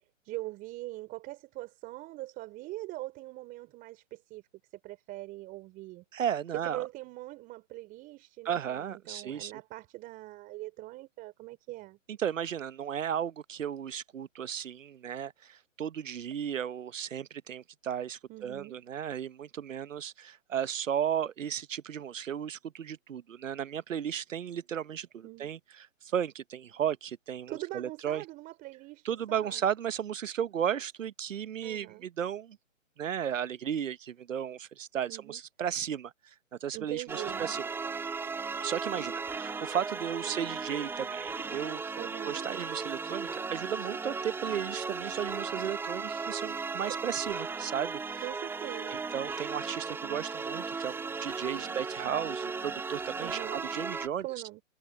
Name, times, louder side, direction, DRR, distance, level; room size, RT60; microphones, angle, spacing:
voice 1, 0.2-4.4 4.8-6.0 6.6-12.0 18.3-18.8 25.2-25.5 27.5-29.6 31.6-32.1 35.1-35.4 36.7-37.5 40.2-40.4 42.0-42.5 46.9-47.0 48.2-49.1 51.5-51.8 53.2-53.7 54.2-54.6, right 18 dB, 20° right, 4.9 m, -42 dB
voice 2, 6.1-6.9 8.4-9.5 12.1-28.2 29.0-32.6 33.0-36.3 36.6-37.6 38.6-41.9 42.3-48.0 48.9-54.3, right 9 dB, 75° right, 0.9 m, -35 dB
sound 1, 37.1-54.1, right 4 dB, 5° right, 2.2 m, -36 dB
hypercardioid pair, 145°, 39 cm